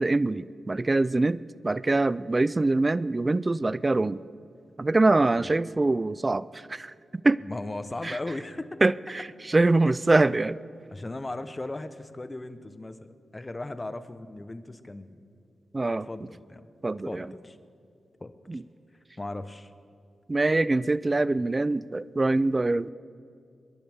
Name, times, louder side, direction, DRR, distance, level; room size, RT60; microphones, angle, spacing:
voice 1, 0.0-4.2 4.8-6.9 7.2-7.4 8.0-8.2 8.8-10.6 15.7-16.1 16.8-17.3 18.5-18.6 20.3-22.9, right 2 dB, 30° right, 18 dB, 0.4 m, -24 dB
voice 2, 7.4-8.7 10.9-15.2 16.1-16.6 17.1-17.6 18.2-18.6 19.2-19.7, left 2 dB, 25° left, 11 dB, 0.9 m, -37 dB
27.0 x 11.5 x 3.6 m, 2.3 s
cardioid pair, 60°, 0 cm